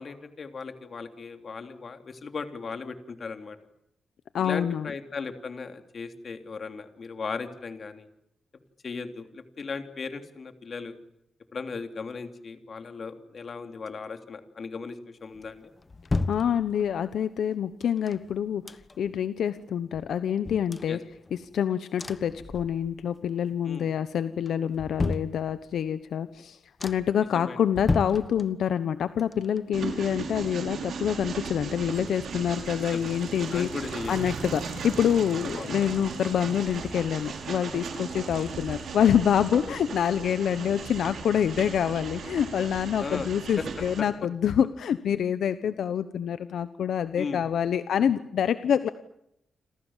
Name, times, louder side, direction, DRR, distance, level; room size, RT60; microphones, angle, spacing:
voice 1, 0.0-3.6 4.4-8.1 8.8-10.9 11.5-15.7 20.9-21.0 23.7-23.9 27.3-27.6 32.9-33.1 33.5-34.1 35.5-35.7 38.4-38.5 39.7-39.8 43.0-43.3 47.2-47.4, left 4 dB, 40° left, 7 dB, 3.2 m, -37 dB
voice 2, 4.3-4.9 16.3-21.0 21.3-33.7 34.1-48.9, left 9 dB, 75° left, 12 dB, 1.1 m, -26 dB
sound 1, 15.3-17.1 17.8-19.2 19.6-19.7 19.9-21.6 22.0-23.2 23.5-24.0 24.4-25.9 26.3-26.4 26.8-27.3 27.7-28.9 29.2-31.0 31.3-31.4, left 3 dB, 25° left, 1.4 m, -34 dB
Train, 29.7-44.0, right 5 dB, 65° right, 5.5 m, -37 dB
sound 2, 31.7-42.7, right 5 dB, 90° right, 5.3 m, -45 dB
29.0 x 27.0 x 7.5 m, 0.78 s
wide cardioid pair, 140°, 0 cm